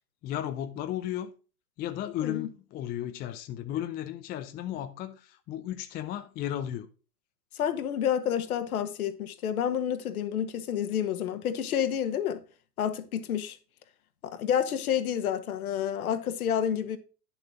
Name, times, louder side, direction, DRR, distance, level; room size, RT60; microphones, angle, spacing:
voice 1, 0.2-1.3 1.8-6.9, left 11 dB, 20° left, 0.6 m, -34 dB
voice 2, 7.5-12.4 12.8-13.6 14.2-17.0, left 9 dB, 60° left, 1.5 m, -29 dB
10.5 x 6.9 x 3.8 m
figure-of-eight pair, 100°, 48 cm